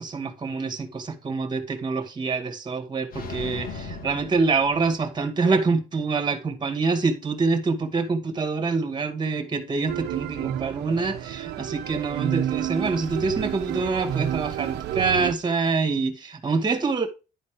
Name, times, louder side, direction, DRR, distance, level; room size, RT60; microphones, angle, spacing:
voice 1, 0.0-17.1, right 4 dB, 25° right, 2.2 m, -26 dB
sound 1, 3.1-5.3, left 3 dB, 60° left, 2.4 m, -38 dB
sound 2, 9.9-15.3, right 11 dB, 80° right, 1.0 m, -30 dB
11.5 x 4.1 x 5.0 m
cardioid pair, 110°, 17 cm